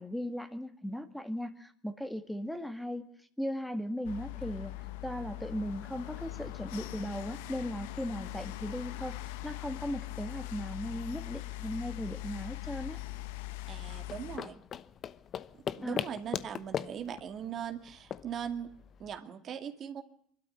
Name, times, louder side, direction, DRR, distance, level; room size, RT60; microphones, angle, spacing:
voice 1, 0.0-3.1 3.4-9.2 9.4-13.0 15.8-16.0, equal, 5° left, 9 dB, 1.9 m, -37 dB
sound 1, 4.0-14.4, left 17 dB, 80° left, 1.0 m, -41 dB
voice 2, 13.7-14.6 15.6-18.7 19.0-20.0, right 8 dB, 50° right, 7 dB, 2.2 m, -40 dB
sound 2, 14.0-19.2, left 9 dB, 45° left, 1.0 m, -40 dB
23.5 x 12.5 x 9.9 m, 0.66 s
hypercardioid pair, 80°, 0 cm